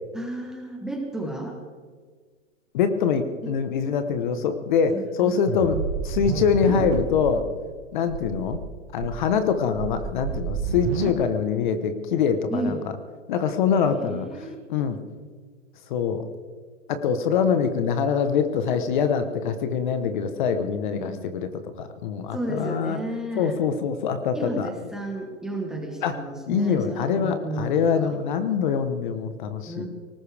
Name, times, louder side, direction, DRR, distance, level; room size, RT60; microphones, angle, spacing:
voice 1, 0.1-1.6 3.4-3.5 4.9-5.8 12.5-12.8 13.9-14.5 20.9-21.3 22.3-23.6 24.3-28.2 29.7-29.9, right 1 dB, ahead, 1 dB, 1.2 m, -33 dB
voice 2, 2.7-7.4 7.9-8.6 8.9-12.8 13.3-15.0 15.9-16.2 16.9-23.0 23.4-24.7 26.0-26.2 26.5-29.9, left 6 dB, 40° left, 9 dB, 1.1 m, -24 dB
sound 1, 5.5-7.3 7.7-7.8 8.1-8.6 9.0-11.1, right 6 dB, 45° right, 1.7 m, -29 dB
19.5 x 19.0 x 3.5 m, 1.6 s
hypercardioid pair, 160°, 38 cm